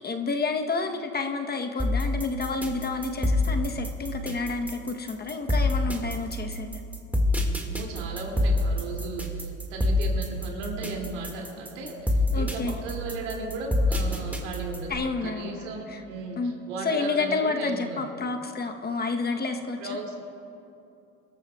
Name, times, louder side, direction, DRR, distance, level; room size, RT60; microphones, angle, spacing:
voice 1, 0.0-6.8 12.3-12.8 14.9-16.0 16.4-16.5 16.8-19.8, left 4 dB, 25° left, 5 dB, 1.0 m, -30 dB
sound 1, 1.8-14.9, left 2 dB, 5° right, 1.9 m, -26 dB
voice 2, 7.6-18.0 19.8-20.2, right 3 dB, 85° right, 0 dB, 2.7 m, -36 dB
27.0 x 13.0 x 2.4 m, 2.7 s
supercardioid pair, 90°, 37 cm